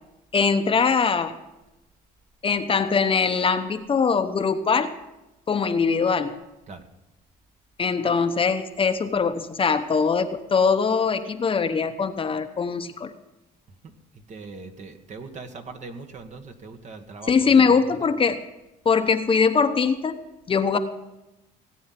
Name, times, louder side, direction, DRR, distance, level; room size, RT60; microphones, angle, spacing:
voice 1, 0.3-1.3 2.4-4.9 5.5-6.4 7.8-13.1 17.3-18.4 18.8-20.2 20.5-20.8, left 5 dB, 30° left, 8 dB, 0.9 m, -22 dB
voice 2, 13.8-18.1, right 3 dB, 45° right, 6 dB, 1.6 m, -41 dB
17.5 x 9.4 x 5.9 m, 0.94 s
cardioid pair, 110°, 17 cm